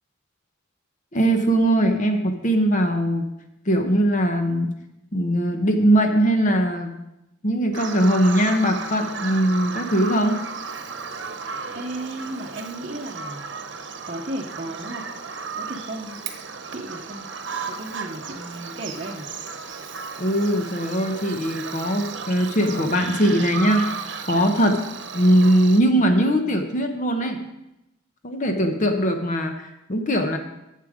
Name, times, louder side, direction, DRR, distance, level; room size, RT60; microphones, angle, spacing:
voice 1, 1.1-3.3 3.7-4.7 5.1-7.0 7.4-10.4 20.2-24.8 25.1-27.4 28.2-30.4, right 1 dB, 40° left, 5 dB, 0.9 m, -21 dB
Bird vocalization bird call bird song, 7.7-25.8, right 5 dB, 75° right, 0.9 m, -34 dB
voice 2, 11.7-13.5 14.1-15.1 15.5-16.2 16.6-17.3 17.6-19.3, right 1 dB, 40° right, -2 dB, 0.8 m, -34 dB
11.0 x 7.5 x 5.0 m, 0.90 s
head